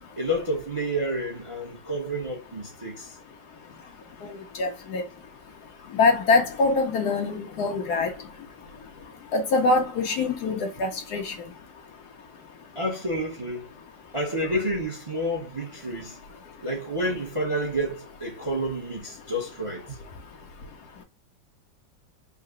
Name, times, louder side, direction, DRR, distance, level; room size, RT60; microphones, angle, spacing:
voice 1, 0.2-3.2 12.7-13.7 14.1-16.2 16.6-20.0, equal, 25° right, 0.7 m, -29 dB
voice 2, 4.6-5.0 6.0-8.1 9.3-11.3, left 3 dB, 65° left, 1.2 m, -23 dB
3.8 x 2.1 x 3.6 m
omnidirectional pair, 2.0 m